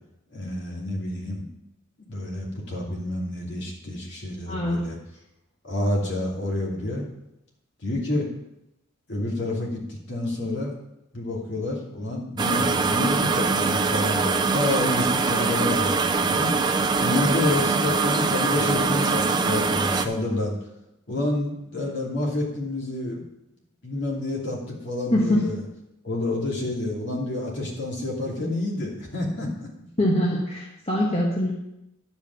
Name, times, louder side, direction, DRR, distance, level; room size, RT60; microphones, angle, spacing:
voice 1, 0.3-1.5 2.1-5.0 5.6-7.1 7.8-8.3 9.1-10.7 11.1-20.5 21.1-23.3 23.8-25.6 26.0-29.7, left 2 dB, 55° left, -3 dB, 2.8 m, -28 dB
voice 2, 4.5-4.8 25.1-25.5 27.1-27.2 30.0-31.5, left 1 dB, 30° left, -4 dB, 1.3 m, -23 dB
sound 1, 12.4-20.1, right 4 dB, 20° right, 0.4 m, -23 dB
11.0 x 5.3 x 7.0 m, 0.87 s
head